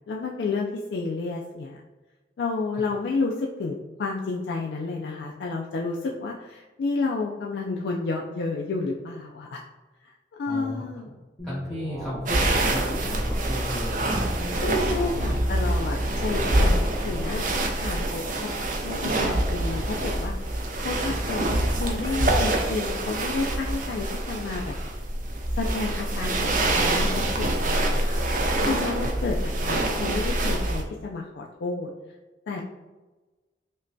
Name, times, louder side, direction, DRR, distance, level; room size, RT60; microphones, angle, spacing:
voice 1, 0.1-1.8 2.4-9.6 10.0-10.1 10.4-11.1 14.6-16.8 17.0-18.5 18.8-21.5 21.8-24.8 25.5-28.2 28.6-29.4 29.6-31.9 32.5-32.6, left 3 dB, 75° left, -1 dB, 0.3 m, -31 dB
voice 2, 10.5-11.2 11.4-14.3 29.0-29.1, equal, ahead, -10 dB, 0.6 m, -35 dB
sound 1, 11.4-13.8 14.4-17.4, equal, 25° left, 0.9 m, -38 dB
sound 2, 12.3-30.8, right 1 dB, 45° right, 0.5 m, -25 dB
5.2 x 2.2 x 2.6 m, 1.2 s
head